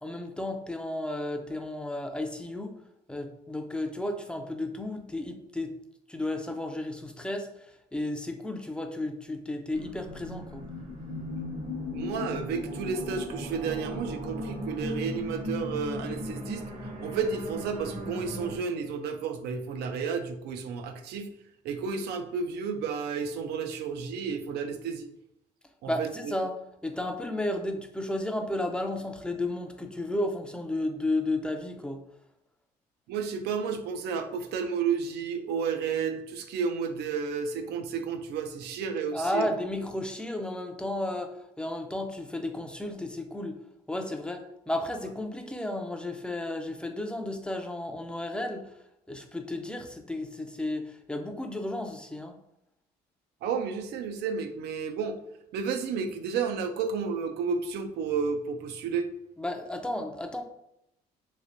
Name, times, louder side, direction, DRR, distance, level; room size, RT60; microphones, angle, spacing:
voice 1, 0.0-2.7 3.1-5.7 6.1-7.7 7.9-10.7 25.9-26.5 26.8-32.0 39.1-43.6 43.9-48.7 49.1-52.4 59.4-60.4, left 1 dB, 5° left, 5 dB, 0.4 m, -33 dB
sound 1, 9.7-18.6, left 1 dB, 50° right, 0.9 m, -37 dB
voice 2, 11.9-16.6 17.0-21.3 21.6-25.1 25.8-26.1 33.1-39.5 53.4-55.2 55.5-59.1, right 5 dB, 75° right, 7 dB, 0.5 m, -31 dB
3.2 x 3.2 x 2.6 m, 0.82 s
cardioid pair, 110°, 17 cm